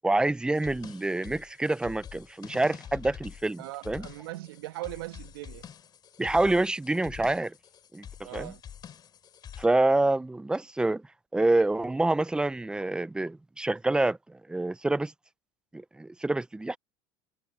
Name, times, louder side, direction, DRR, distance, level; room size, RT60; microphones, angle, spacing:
voice 1, 0.0-4.0 6.2-7.5 7.9-8.1 8.3-8.5 9.6-11.0 11.3-15.1 15.7-16.8, right 2 dB, 5° right, 0.6 m, -27 dB
sound 1, 0.5-9.7, left 8 dB, 35° left, 3.1 m, -46 dB
voice 2, 3.6-5.7 8.2-8.6, right 18 dB, 85° right, 1.6 m, -40 dB
supercardioid pair, 110°, 12 cm